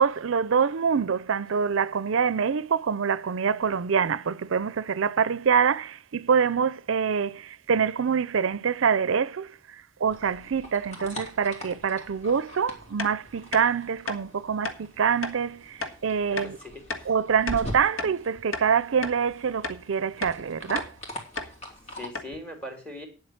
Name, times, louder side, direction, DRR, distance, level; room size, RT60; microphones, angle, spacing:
voice 1, 0.0-9.5 10.0-16.6 17.1-20.9, right 6 dB, 75° right, 0.5 m, -25 dB
sound 1, 10.1-22.1, equal, 35° left, 3.0 m, -43 dB
sound 2, 13.0-13.1 13.5-13.7 14.0-14.2 14.6-14.8 15.2-15.4 15.8-15.9 16.4-16.5 16.9-17.1 17.5-18.2 18.5-18.7 19.0-19.2 19.6-19.8 20.2-20.4 20.7-20.9 21.4-21.5 21.8-21.9 22.1-22.3, left 3 dB, 85° left, 1.6 m, -33 dB
voice 2, 16.3-17.1 21.9-23.1, left 1 dB, 5° left, 3.2 m, -40 dB
9.5 x 7.8 x 6.4 m
head